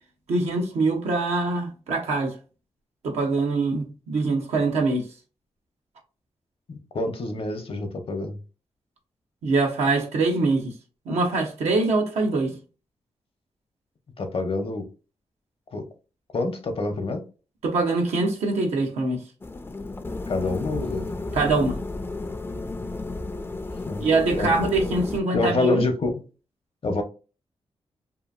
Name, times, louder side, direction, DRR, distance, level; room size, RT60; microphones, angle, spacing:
voice 1, 0.3-2.3 3.0-5.1 9.4-10.7 11.1-12.6 17.6-19.2 21.3-21.8 24.0-25.9, right 3 dB, 85° right, 0.9 m, -23 dB
voice 2, 6.7-8.4 12.3-12.6 14.2-14.9 15.7-15.9 16.3-17.2 20.3-21.1 23.9-24.1 24.3-24.7 25.3-26.2 26.8-27.0, left 2 dB, 60° left, 0.8 m, -27 dB
sound 1, 19.4-25.2, left 2 dB, 20° left, 0.4 m, -32 dB
2.8 x 2.5 x 2.5 m
supercardioid pair, 45°, 11 cm